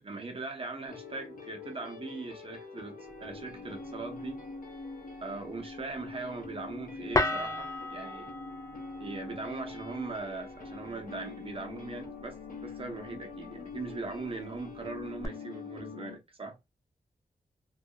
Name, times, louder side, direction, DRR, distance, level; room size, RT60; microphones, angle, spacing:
voice 1, 0.0-4.4 5.2-8.3 9.0-16.6, right 3 dB, 40° right, 0.7 m, -40 dB
sound 1, 0.9-16.2, left 4 dB, 65° left, 0.7 m, -44 dB
sound 2, 3.0-15.3, left 2 dB, 20° left, 0.4 m, -39 dB
2.3 x 2.0 x 2.7 m
wide cardioid pair, 90°, 15 cm